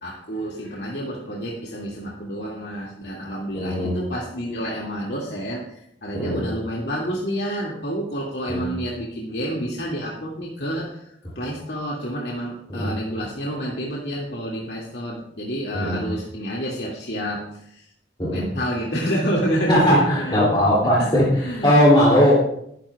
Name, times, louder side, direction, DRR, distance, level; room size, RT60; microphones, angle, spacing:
voice 1, 0.0-17.9 18.3-20.4 21.0-21.1 21.4-21.7, equal, 70° left, -4 dB, 2.4 m, -29 dB
voice 2, 3.5-4.0 6.1-6.4 8.5-8.6 12.7-12.9 15.7-16.0 18.2-18.5 19.7-21.3 21.6-22.3, equal, 30° left, -5 dB, 3.0 m, -18 dB
21.0 x 10.5 x 2.4 m, 0.71 s
head